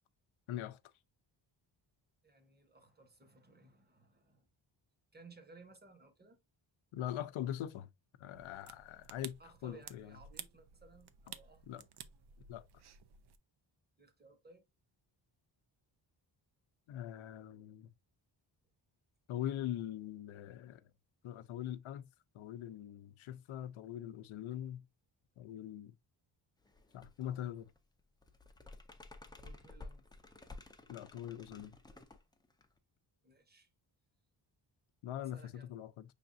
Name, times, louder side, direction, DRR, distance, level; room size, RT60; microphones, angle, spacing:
voice 1, 0.5-0.8 6.9-7.9 8.2-10.2 11.7-11.8 12.5-12.7 16.9-17.9 19.3-20.8 21.2-22.1 22.3-24.8 25.4-25.9 26.9-27.7 30.9-31.8 35.0-36.0, left 11 dB, 85° left, 0.6 m, -42 dB
voice 2, 2.2-4.5 5.1-6.4 9.4-11.9 14.0-14.6 29.4-30.1 33.2-33.7 35.2-35.8, right 3 dB, 20° right, 1.0 m, -60 dB
sound 1, 8.3-13.4, right 8 dB, 60° right, 0.6 m, -53 dB
sound 2, 26.6-27.3 27.6-32.8, left 3 dB, 10° left, 0.4 m, -53 dB
5.7 x 3.5 x 2.6 m
wide cardioid pair, 145°, 47 cm